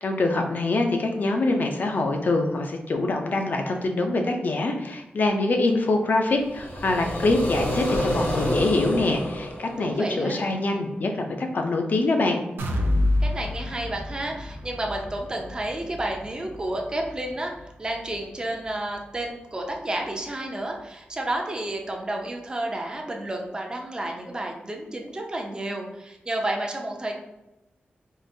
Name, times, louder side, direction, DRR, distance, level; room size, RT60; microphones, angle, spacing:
voice 1, 0.0-12.4, left 2 dB, 55° left, 4 dB, 0.5 m, -24 dB
sound 1, 6.3-10.4, equal, 85° left, 1.2 m, -28 dB
voice 2, 9.8-10.5 13.2-17.5 17.8-27.1, right 1 dB, 20° right, 1 dB, 0.5 m, -31 dB
sound 2, 12.6-20.4 20.8-20.9 21.3-21.4, left 1 dB, 85° right, 0.4 m, -30 dB
3.7 x 2.5 x 2.6 m, 0.95 s
wide cardioid pair, 110°, 4 cm